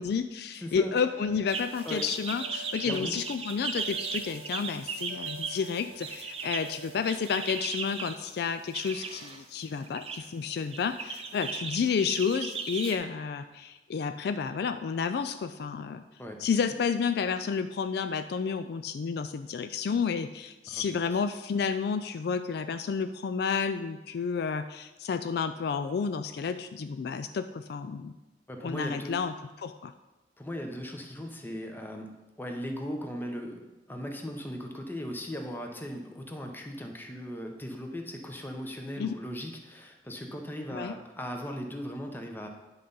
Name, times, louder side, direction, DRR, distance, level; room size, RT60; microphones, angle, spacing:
voice 1, 0.0-16.0 16.4-28.1 28.6-29.3 29.6-29.9 39.0-39.1 40.7-40.9, left 6 dB, 65° left, 10 dB, 0.3 m, -31 dB
voice 2, 0.6-0.9 1.8-2.1 2.8-3.2 16.2-16.4 20.7-20.8 21.1-21.2 28.5-29.2 30.4-42.5, equal, 10° left, 3 dB, 0.8 m, -38 dB
sound 1, 1.0-7.7, right 3 dB, 90° right, 0.8 m, -49 dB
sound 2, 1.5-8.2 8.7-9.4 9.8-10.2 10.7-13.0, right 5 dB, 35° right, 0.6 m, -37 dB
10.0 x 3.8 x 5.5 m, 1.1 s
head